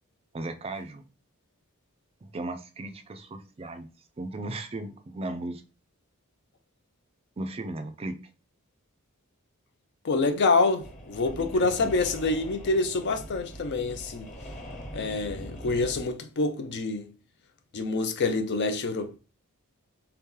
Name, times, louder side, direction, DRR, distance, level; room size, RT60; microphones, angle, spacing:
voice 1, 0.3-1.0 2.2-3.9 4.2-5.6 7.4-8.2 11.3-11.9, right 2 dB, 25° right, 0.4 m, -36 dB
voice 2, 10.0-14.3 14.9-17.1 17.7-19.2, left 3 dB, 50° left, 0.5 m, -26 dB
sound 1, 10.8-16.0, equal, 35° left, 1.2 m, -42 dB
3.8 x 2.8 x 3.7 m
head